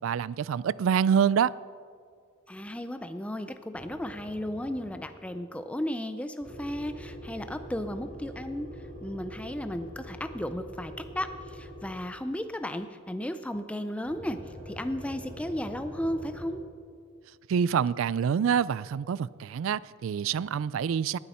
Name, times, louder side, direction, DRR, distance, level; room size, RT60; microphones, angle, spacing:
voice 1, 0.0-1.5 17.5-21.2, right 7 dB, 75° right, 0.3 m, -26 dB
voice 2, 2.5-8.7 9.0-16.6, left 1 dB, 5° left, 0.4 m, -34 dB
sound 1, 3.7-5.2 6.4-12.2 14.0-16.5, equal, 40° right, 2.6 m, -44 dB
19.0 x 9.7 x 4.3 m
head